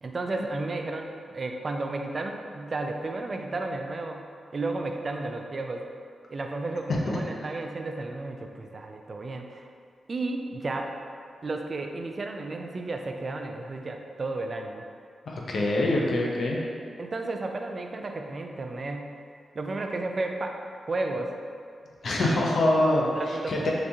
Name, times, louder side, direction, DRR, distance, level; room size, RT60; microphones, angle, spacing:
voice 1, 0.0-4.3 4.5-5.8 6.3-9.7 10.1-11.0 11.4-14.8 17.0-19.1 19.5-20.6 20.9-21.3 22.2-22.5 23.0-23.7, right 2 dB, 50° right, 3 dB, 0.3 m, -33 dB
voice 2, 15.3-16.6 22.0-23.7, left 1 dB, 65° left, -2 dB, 0.5 m, -24 dB
3.2 x 2.9 x 2.7 m, 2.3 s
supercardioid pair, 45°, 0 cm